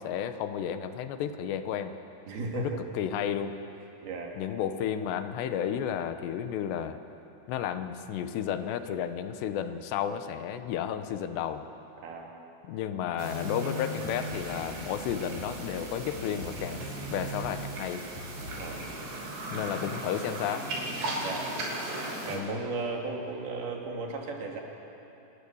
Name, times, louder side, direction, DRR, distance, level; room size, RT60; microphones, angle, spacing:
voice 1, 0.0-2.0 2.5-3.6 4.4-7.0 7.5-11.7 12.6-16.8 17.1-18.0 19.5-20.7 22.3-22.6, left 9 dB, 90° left, 9 dB, 3.2 m, -32 dB
voice 2, 2.3-2.8 4.0-4.3 12.0-12.3 18.6-18.8 21.2-21.5 22.3-24.6, right 3 dB, 65° right, 0 dB, 4.2 m, -35 dB
sound 1, 13.2-22.4, right 1 dB, 90° right, 5.3 m, -37 dB
sound 2, 14.0-19.0, left 2 dB, 45° left, 4.7 m, -45 dB
26.0 x 20.0 x 7.1 m, 2.9 s
omnidirectional pair, 4.8 m